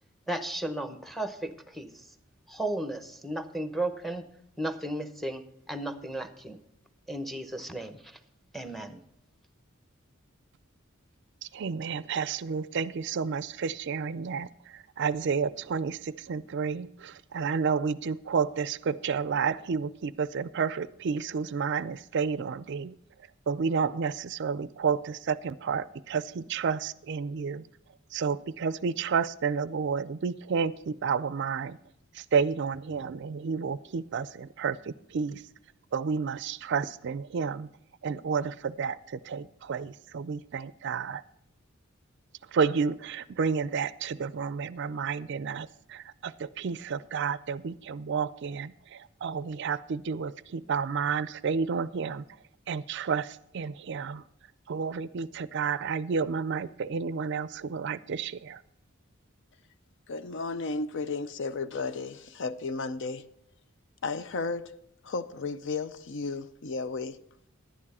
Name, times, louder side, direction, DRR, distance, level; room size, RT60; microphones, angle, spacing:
voice 1, 0.3-2.1 2.5-4.2 4.6-5.4 5.7-6.6 7.1-8.2 8.5-9.0, right 1 dB, ahead, 0.8 m, -34 dB
voice 2, 11.4-22.9 23.5-27.7 28.1-31.8 32.1-35.4 35.9-37.7 38.0-41.2 42.5-52.2 52.7-54.2 54.7-58.6, right 6 dB, 55° right, 0.4 m, -31 dB
voice 3, 60.1-63.3 64.0-64.8 65.0-67.2, left 3 dB, 60° left, 0.5 m, -34 dB
11.5 x 9.9 x 4.2 m
head